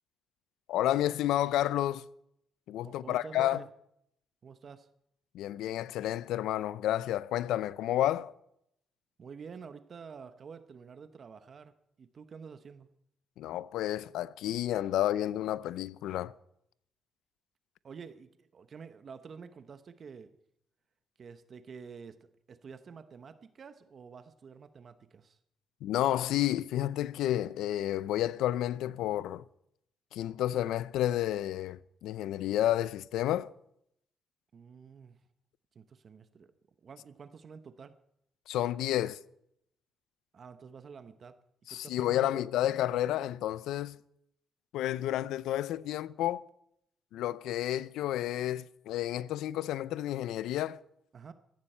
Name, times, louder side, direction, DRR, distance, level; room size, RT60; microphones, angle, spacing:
voice 1, 0.7-2.0 2.7-3.6 5.3-8.3 13.4-16.3 25.8-29.4 30.1-33.5 38.5-39.2 41.7-44.0 44.7-46.4 47.1-50.8, left 13 dB, 90° left, 0.4 m, -31 dB
voice 2, 2.8-3.7 4.4-4.9 9.2-12.9 17.8-20.4 21.2-25.4 34.5-35.2 35.7-36.5 36.8-38.0 40.3-41.4 41.7-42.5 51.1-51.3, right 6 dB, 50° right, 0.9 m, -49 dB
17.0 x 14.5 x 4.4 m
cardioid pair, 90°, 0 cm